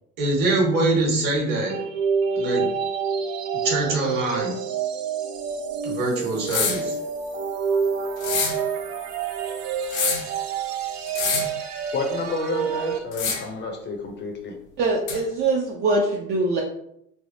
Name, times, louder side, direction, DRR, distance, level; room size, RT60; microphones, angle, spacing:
voice 1, 0.2-1.8 2.3-2.7 3.6-4.5 5.8-7.0, right 2 dB, 50° right, 0 dB, 1.3 m, -23 dB
sound 1, 1.7-13.0, right 6 dB, 70° right, 0.6 m, -28 dB
sound 2, 6.5-6.9 8.2-8.6 9.8-10.3 11.1-11.6 13.1-13.6 15.1-15.2, left 5 dB, 85° left, 0.8 m, -26 dB
voice 2, 11.9-14.6, left 3 dB, 30° left, 2 dB, 0.5 m, -30 dB
voice 3, 14.8-16.6, right 2 dB, 25° right, -1 dB, 0.4 m, -23 dB
3.3 x 2.3 x 2.6 m, 0.75 s
hypercardioid pair, 95°, 40 cm